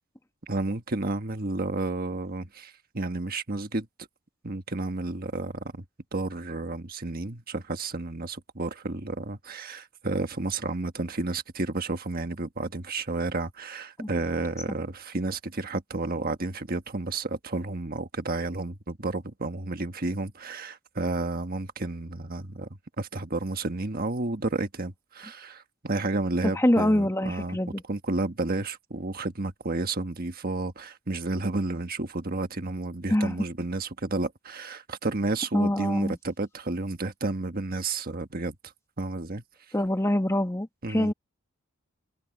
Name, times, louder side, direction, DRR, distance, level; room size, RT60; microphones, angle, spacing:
voice 1, 0.5-3.9 4.4-5.8 6.1-22.7 23.0-27.6 27.9-38.5 39.0-39.4 40.8-41.1, right 2 dB, 45° right, 1.4 m, -31 dB
voice 2, 26.6-27.8 33.1-33.3 35.5-36.2 39.7-41.1, left 1 dB, 15° left, 1.4 m, -25 dB
head